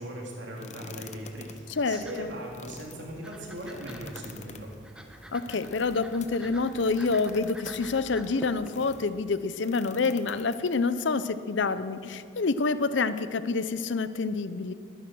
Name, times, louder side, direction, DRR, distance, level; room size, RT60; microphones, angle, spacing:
voice 1, 0.0-4.7, right 1 dB, 70° right, -1 dB, 3.0 m, -39 dB
sound 1, 0.6-9.1 9.6-11.0, left 5 dB, 35° left, 0.7 m, -48 dB
sound 2, 0.7-9.1, equal, 5° right, 1.0 m, -48 dB
voice 2, 1.8-2.3 5.3-14.7, left 4 dB, 70° left, 13 dB, 0.6 m, -27 dB
21.0 x 10.0 x 6.2 m, 2.3 s
head